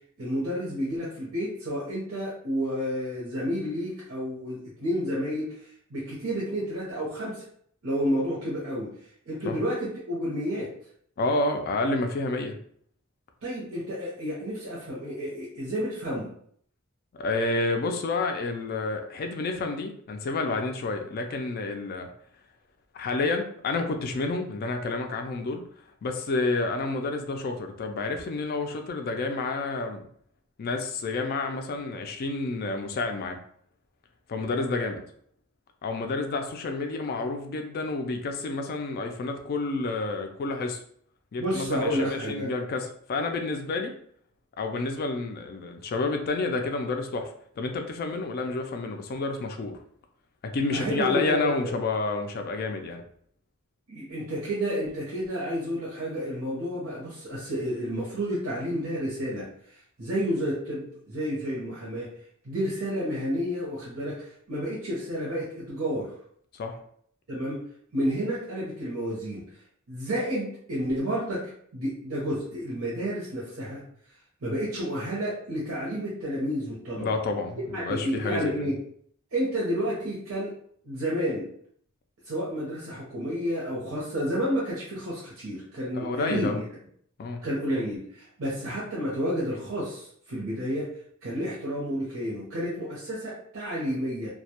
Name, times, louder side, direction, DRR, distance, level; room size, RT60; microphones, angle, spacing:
voice 1, 0.2-5.5 5.9-7.4 7.8-8.9 9.3-10.7 13.4-16.3 41.4-42.5 50.7-51.8 53.9-59.4 60.0-62.1 62.4-66.1 67.3-67.6 67.9-69.4 69.9-71.4 71.7-73.8 74.4-77.1 77.7-78.7 79.3-80.5 80.8-81.5 82.2-86.6 87.4-90.9 91.2-94.3, equal, 70° right, -7 dB, 0.7 m, -30 dB
voice 2, 11.2-12.6 17.1-22.1 22.9-25.6 26.0-30.0 30.6-33.4 34.3-35.0 35.8-40.8 41.3-43.9 44.6-47.3 47.6-49.8 50.4-53.0 66.5-66.8 77.0-78.7 85.9-86.6 87.2-87.4, left 3 dB, 45° left, 5 dB, 0.3 m, -29 dB
2.2 x 2.0 x 2.8 m, 0.62 s
head